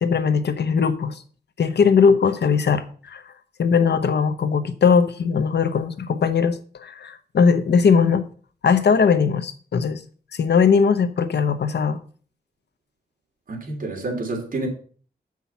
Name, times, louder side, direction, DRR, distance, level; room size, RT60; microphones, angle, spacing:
voice 1, 0.0-1.2 1.6-3.2 3.6-8.2 8.6-10.0 10.3-12.0, left 6 dB, 75° left, 0.9 m, -19 dB
voice 2, 13.5-14.7, right 2 dB, 50° right, 3.2 m, -28 dB
7.3 x 6.1 x 7.0 m
wide cardioid pair, 125°, 17 cm